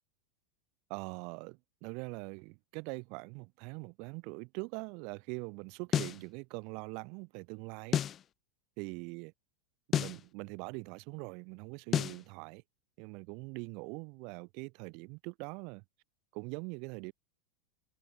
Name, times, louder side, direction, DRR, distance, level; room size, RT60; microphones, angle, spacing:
voice 1, 0.9-8.0 8.8-9.3 9.9-12.6 13.0-15.8 16.3-17.1, right 33 dB, 55° right, 3.3 m, -43 dB
sound 1, 5.9-6.2 7.9-8.2 9.9-10.2 11.9-12.2, left 10 dB, 35° left, 0.7 m, -30 dB
hypercardioid pair, 100°, 0 cm